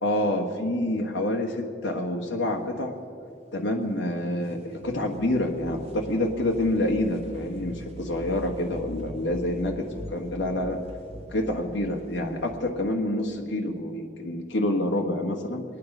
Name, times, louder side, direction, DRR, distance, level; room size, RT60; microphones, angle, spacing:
voice 1, 0.0-2.9 3.5-10.8 11.3-15.6, left 1 dB, 85° left, 0 dB, 1.5 m, -27 dB
sound 1, 4.7-12.7, left 1 dB, 35° right, 1.4 m, -42 dB
24.5 x 9.7 x 5.4 m, 2.4 s
head